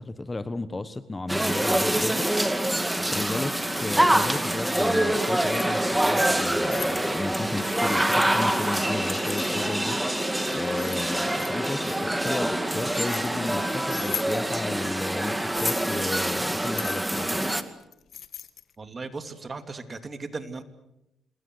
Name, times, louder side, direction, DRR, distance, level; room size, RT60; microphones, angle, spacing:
voice 1, 0.0-2.3 3.1-10.0 10.5-17.5, left 2 dB, 20° left, 13 dB, 1.3 m, -33 dB
sound 1, 1.3-17.6, right 1 dB, 5° right, 2.2 m, -25 dB
Keys jangling, 3.6-4.5 5.2-5.8 6.4-7.0 7.5-8.2 9.1-9.9 10.4-11.9 12.5-13.3 13.8-14.3 15.4-16.0 16.6-18.7, left 8 dB, 60° left, 1.6 m, -39 dB
sound 2, 5.0-15.0, right 2 dB, 75° right, 7.2 m, -51 dB
voice 2, 18.8-20.6, right 3 dB, 30° right, 8 dB, 2.8 m, -37 dB
27.5 x 21.5 x 8.0 m, 0.87 s
cardioid pair, 90°, 0 cm